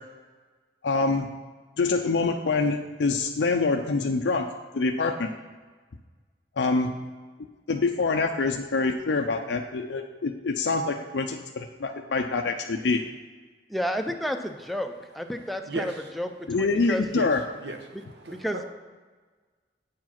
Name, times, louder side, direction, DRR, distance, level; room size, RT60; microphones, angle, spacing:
voice 1, 0.8-1.3 1.8-4.4 4.7-5.3 6.6-6.9 7.7-13.0 16.5-17.4, left 3 dB, 85° left, 4 dB, 0.5 m, -25 dB
voice 2, 13.7-17.0 18.3-18.6, equal, ahead, 5 dB, 0.5 m, -31 dB
voice 3, 15.6-16.1 17.1-18.6, right 2 dB, 75° right, 5 dB, 1.0 m, -36 dB
8.5 x 4.8 x 5.8 m, 1.4 s
head